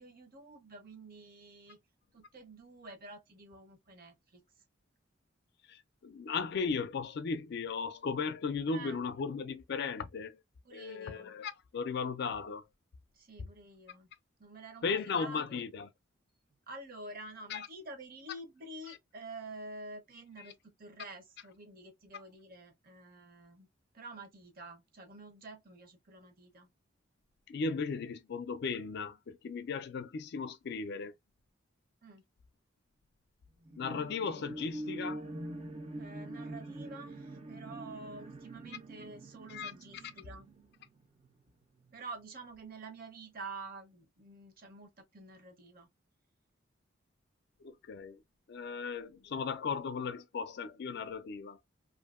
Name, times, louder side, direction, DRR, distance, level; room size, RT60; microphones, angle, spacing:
voice 1, 0.0-1.8 2.1-4.4 8.7-9.0 10.6-11.3 13.1-14.1 14.4-15.6 16.7-23.7 23.9-26.7 32.0-32.2 35.9-40.5 41.9-45.9 48.9-49.0, right 2 dB, 50° right, 0.8 m, -49 dB
voice 2, 5.7-10.4 10.7-12.6 14.8-15.9 17.5-17.7 27.5-31.1 33.8-35.3 39.5-39.7 47.6-48.2 48.5-51.6, left 5 dB, 60° left, 0.4 m, -36 dB
sound 1, 33.6-41.4 41.9-42.0, right 1 dB, 30° right, 0.4 m, -44 dB
2.7 x 2.5 x 2.4 m
head